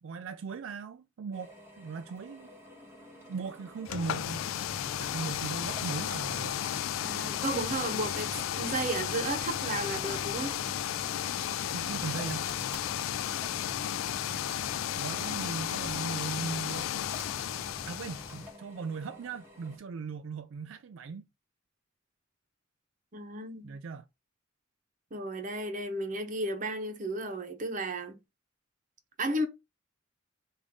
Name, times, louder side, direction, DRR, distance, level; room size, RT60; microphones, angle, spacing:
voice 1, 0.0-2.5 3.3-4.5 5.0-6.6 11.7-12.5 14.9-16.9 17.9-21.3 23.6-24.1, right 5 dB, 75° right, 0.4 m, -38 dB
Drill, 1.3-19.8, equal, 10° right, 1.3 m, -52 dB
sound 1, 3.8-18.5, left 11 dB, 90° left, 0.3 m, -34 dB
sound 2, 3.8-18.5, left 1 dB, 10° left, 0.4 m, -48 dB
voice 2, 7.0-8.3 8.6-10.5 23.1-23.7 25.1-28.2 29.2-29.5, right 2 dB, 40° right, 0.9 m, -33 dB
5.1 x 2.6 x 3.6 m
head